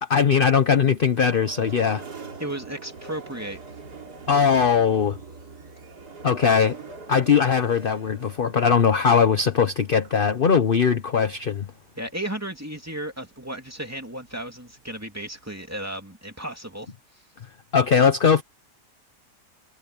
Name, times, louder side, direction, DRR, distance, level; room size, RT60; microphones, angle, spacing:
voice 1, 0.0-2.0 4.3-5.2 6.2-6.8 7.1-11.6 17.7-18.4, left 6 dB, 40° left, 0.9 m, -20 dB
sound 1, 0.8-15.7, right 4 dB, 70° right, 3.4 m, -45 dB
voice 2, 2.4-3.6 12.0-16.9, right 1 dB, 10° right, 2.6 m, -34 dB
omnidirectional pair, 1.8 m